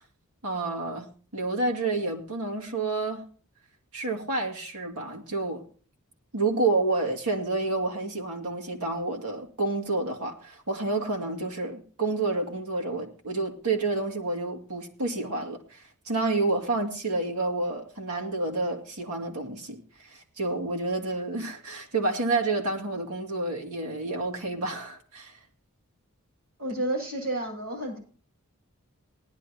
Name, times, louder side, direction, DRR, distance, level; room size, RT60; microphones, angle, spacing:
voice 1, 0.4-3.2 3.9-5.6 6.3-25.4, right 3 dB, 85° right, 2.4 m, -29 dB
voice 2, 26.6-28.0, right 1 dB, 70° right, 7.2 m, -30 dB
19.0 x 10.5 x 2.9 m
head